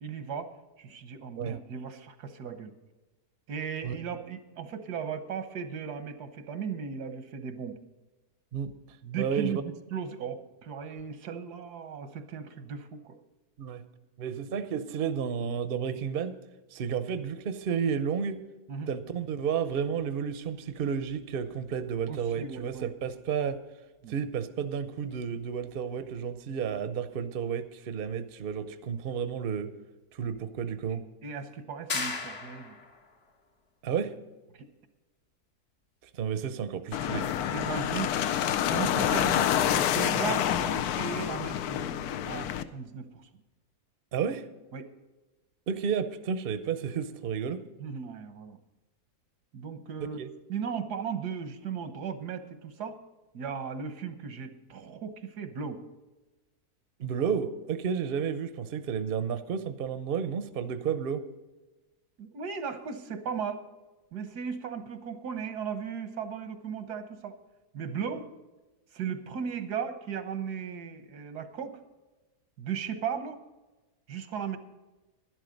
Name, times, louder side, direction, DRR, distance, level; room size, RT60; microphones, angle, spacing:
voice 1, 0.0-2.7 3.5-7.8 9.0-13.2 18.7-18.9 22.1-22.9 24.0-24.1 31.2-32.8 34.5-34.7 37.5-38.1 38.7-43.3 44.7-44.9 47.8-48.6 49.5-50.2 50.5-53.0 53.3-55.8 62.2-63.6 64.1-67.4 67.7-68.3 68.9-71.8 72.6-73.4 74.1-74.6, right 7 dB, 90° right, 9 dB, 1.7 m, -36 dB
voice 2, 9.2-9.6 13.6-13.8 14.2-16.3 16.7-18.4 18.9-23.6 24.1-29.7 30.1-31.0 33.8-34.1 36.1-37.5 44.1-44.4 45.7-47.6 50.2-50.3 57.0-61.2, right 7 dB, 45° right, 11 dB, 0.8 m, -31 dB
sound 1, 31.9-33.0, left 4 dB, 50° left, 1.6 m, -34 dB
sound 2, 36.9-42.6, left 10 dB, 75° left, 1.1 m, -28 dB
12.0 x 11.5 x 5.2 m, 1.1 s
omnidirectional pair, 1.7 m